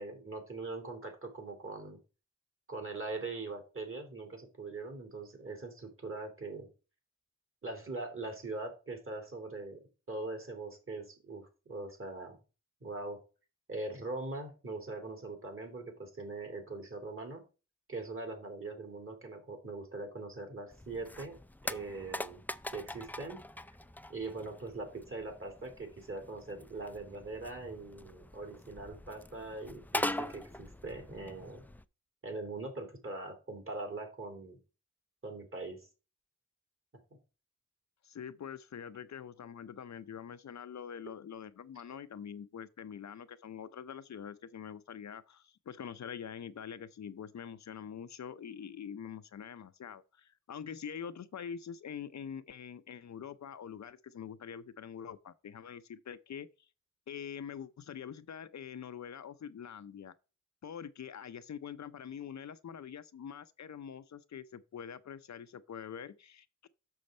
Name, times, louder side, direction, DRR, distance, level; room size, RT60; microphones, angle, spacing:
voice 1, 0.0-2.0 2.7-6.7 7.6-9.8 10.1-12.4 12.8-13.2 13.7-17.4 17.9-21.4 21.6-22.4 22.7-23.4 24.1-31.6 32.2-34.6 35.2-35.9, right 3 dB, 45° right, 2.9 m, -42 dB
sound 1, 20.7-31.8, left 1 dB, 5° left, 0.3 m, -42 dB
voice 2, 38.0-56.5 57.1-60.1 60.6-66.7, left 8 dB, 65° left, 0.6 m, -45 dB
6.6 x 6.3 x 4.3 m
wide cardioid pair, 80°, 31 cm